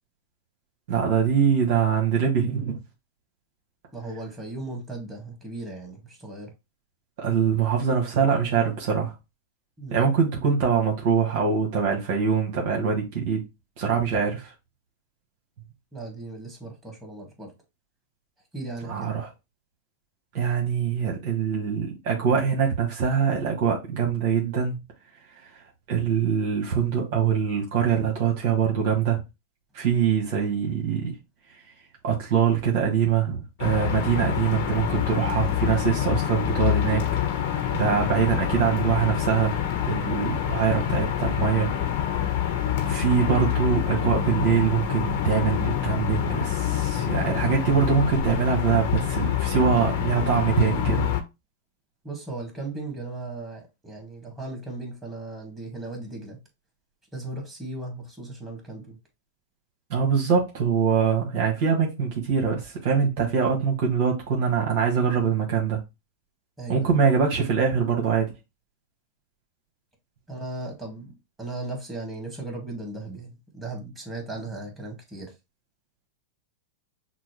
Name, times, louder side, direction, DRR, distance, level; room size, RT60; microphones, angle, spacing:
voice 1, 0.9-2.8 7.2-9.1 9.9-13.4 13.8-14.5 18.9-19.3 20.3-24.8 25.9-29.2 29.7-31.1 32.0-37.0 37.7-39.5 39.8-41.7 42.8-51.1 59.9-65.8 66.7-68.3, right 7 dB, 55° right, 1.4 m, -23 dB
voice 2, 3.9-6.5 9.8-10.1 15.9-17.5 18.5-19.1 40.1-40.3 52.0-56.4 57.1-59.0 63.2-63.4 66.6-66.9 70.3-75.3, right 2 dB, 10° right, 2.0 m, -37 dB
sound 1, 33.6-51.2, left 10 dB, 60° left, 1.0 m, -26 dB
6.0 x 2.1 x 3.1 m
hypercardioid pair, 105°, 0 cm